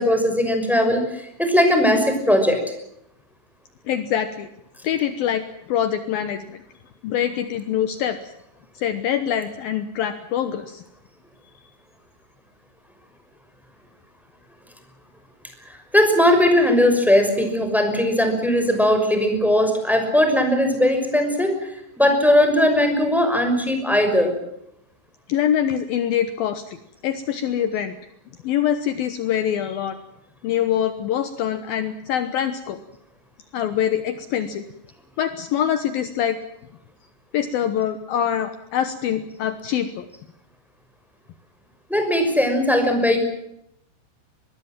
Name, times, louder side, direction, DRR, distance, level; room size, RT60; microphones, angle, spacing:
voice 1, 0.0-2.6 15.7-21.7 22.0-24.3 41.9-43.2, left 1 dB, ahead, 6 dB, 5.2 m, -19 dB
voice 2, 3.9-4.5 4.8-5.4 5.7-6.6 7.0-8.3 8.7-10.8 25.3-26.8 27.0-28.0 28.4-30.0 30.4-32.8 33.5-34.6 35.2-36.4 37.3-40.1, left 9 dB, 80° left, 10 dB, 2.1 m, -24 dB
24.0 x 21.5 x 7.5 m, 0.80 s
omnidirectional pair, 5.9 m